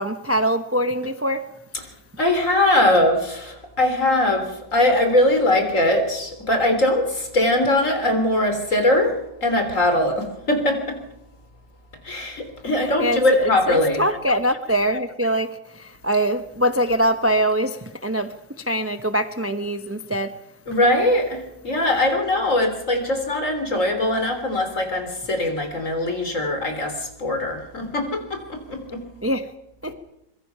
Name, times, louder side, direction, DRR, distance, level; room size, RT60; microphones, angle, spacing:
voice 1, 0.0-1.4 12.8-15.5 15.7-20.3 29.2-29.4 29.8-29.9, right 1 dB, 15° right, 9 dB, 0.5 m, -23 dB
voice 2, 2.2-11.0 12.0-14.0 20.7-29.0, left 1 dB, 40° left, 5 dB, 3.9 m, -21 dB
25.0 x 22.5 x 5.7 m, 0.85 s
omnidirectional pair, 2.0 m